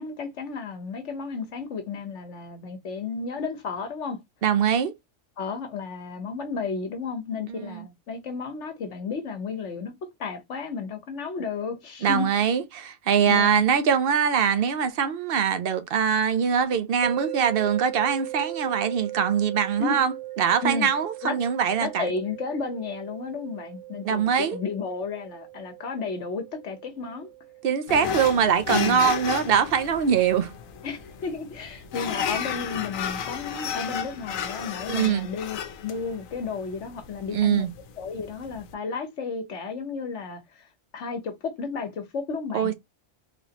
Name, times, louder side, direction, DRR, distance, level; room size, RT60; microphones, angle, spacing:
voice 1, 0.0-4.2 5.4-9.9 10.2-12.3 13.3-13.6 19.8-20.0 20.6-20.9 21.2-21.4 21.8-27.3 28.7-29.1 30.8-37.7 38.0-40.7 40.9-42.7, left 5 dB, 65° left, 1.2 m, -33 dB
voice 2, 4.4-4.9 7.5-7.8 12.0-22.1 24.0-24.6 27.6-30.5 34.9-35.3 37.3-37.7 42.5-42.7, right 7 dB, 55° right, 0.8 m, -23 dB
sound 1, 17.0-30.1, right 16 dB, 80° right, 1.1 m, -39 dB
sound 2, 27.9-38.7, left 7 dB, 85° left, 1.1 m, -33 dB
4.0 x 3.0 x 2.9 m
omnidirectional pair, 1.4 m